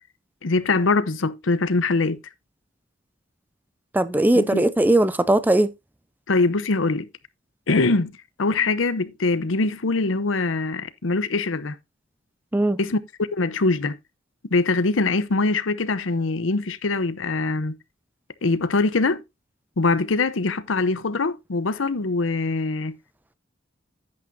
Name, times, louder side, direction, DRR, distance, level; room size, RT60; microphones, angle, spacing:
voice 1, 0.4-2.2 4.3-4.6 6.3-7.1 7.7-8.1 8.4-11.8 12.8-13.0 13.3-14.0 14.5-17.8 18.4-19.2 19.8-22.9, left 3 dB, 85° left, 0.8 m, -23 dB
voice 2, 3.9-5.7 12.5-12.8, right 1 dB, 10° right, 0.5 m, -19 dB
10.5 x 8.7 x 2.6 m
head